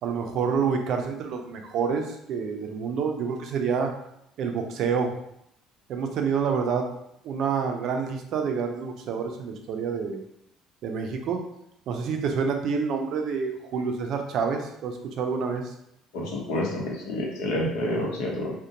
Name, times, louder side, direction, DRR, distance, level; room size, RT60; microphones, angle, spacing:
voice 1, 0.0-3.9 4.4-5.1 5.9-6.9 7.2-10.2 10.8-11.4 11.9-15.7, right 6 dB, 60° right, 4 dB, 0.4 m, -28 dB
voice 2, 16.1-18.5, left 1 dB, 85° left, -2 dB, 0.7 m, -28 dB
2.5 x 2.1 x 2.8 m, 0.77 s
cardioid pair, 135°, 0 cm